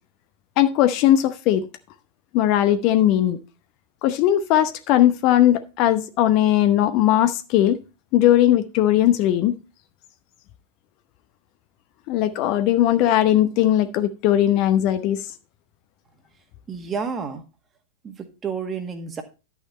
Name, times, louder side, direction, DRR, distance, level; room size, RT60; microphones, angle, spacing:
voice 1, 0.6-1.7 2.3-3.4 4.0-7.8 8.1-9.6 12.1-15.2, left 12 dB, 40° left, 0.8 m, -18 dB
voice 2, 16.7-17.4 18.0-19.2, right 6 dB, 20° right, 1.7 m, -30 dB
11.5 x 6.0 x 4.3 m
figure-of-eight pair, 90°, 0 cm